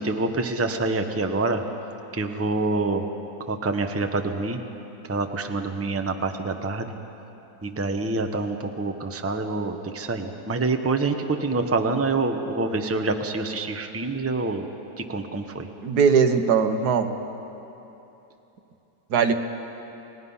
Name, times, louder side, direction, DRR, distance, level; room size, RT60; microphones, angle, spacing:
voice 1, 0.0-1.6 2.1-3.0 3.5-4.6 5.1-6.9 7.6-14.6 15.1-15.7, right 3 dB, 10° right, 5 dB, 0.8 m, -26 dB
voice 2, 15.8-17.1 19.1-19.3, right 6 dB, 80° right, 8 dB, 1.6 m, -20 dB
29.5 x 19.0 x 5.6 m, 3.0 s
omnidirectional pair, 1.7 m